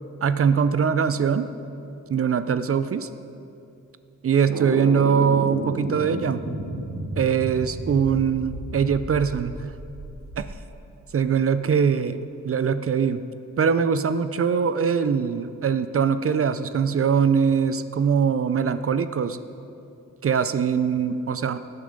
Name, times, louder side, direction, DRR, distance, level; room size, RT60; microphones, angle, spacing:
voice 1, 0.2-1.5 2.1-3.1 4.2-6.5 7.2-9.7 10.4-10.5 11.1-13.2 13.6-19.4 20.2-21.6, right 6 dB, 45° right, 12 dB, 0.4 m, -22 dB
sound 1, 4.5-10.6, right 1 dB, 85° right, 1.8 m, -32 dB
17.5 x 6.8 x 5.1 m, 2.7 s
wide cardioid pair, 125°, 31 cm